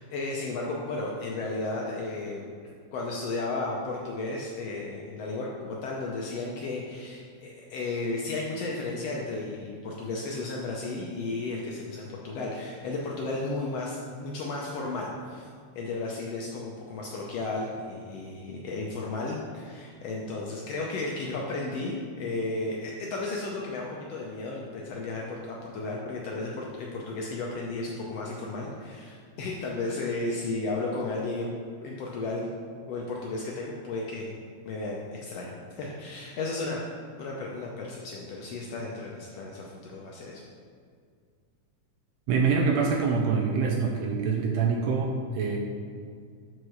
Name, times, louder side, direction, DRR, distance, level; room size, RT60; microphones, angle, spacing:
voice 1, 0.1-2.5 2.9-15.5 15.7-31.5 31.8-32.5 32.9-34.3 34.6-36.8 37.2-40.4, left 3 dB, 75° left, -2 dB, 1.5 m, -34 dB
voice 2, 42.3-45.6, right 5 dB, 80° right, 1 dB, 1.7 m, -25 dB
5.3 x 4.7 x 6.2 m, 2.1 s
omnidirectional pair, 3.5 m